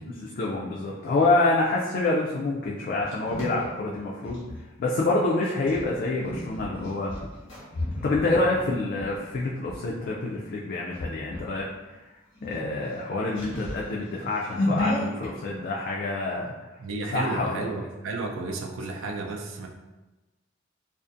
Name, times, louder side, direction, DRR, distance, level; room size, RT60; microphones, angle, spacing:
voice 1, 0.2-4.4 4.8-7.2 8.0-12.0 12.4-16.5 17.1-17.7, left 2 dB, 50° left, -3 dB, 0.3 m, -27 dB
sound 1, 2.6-4.6 5.6-9.8 10.3-10.6 10.9-11.6 11.9-12.0 12.3-15.3, left 1 dB, 90° left, 1.1 m, -33 dB
voice 2, 16.8-19.7, right 3 dB, 90° right, 2 dB, 0.4 m, -32 dB
2.4 x 2.4 x 2.5 m, 1.1 s
head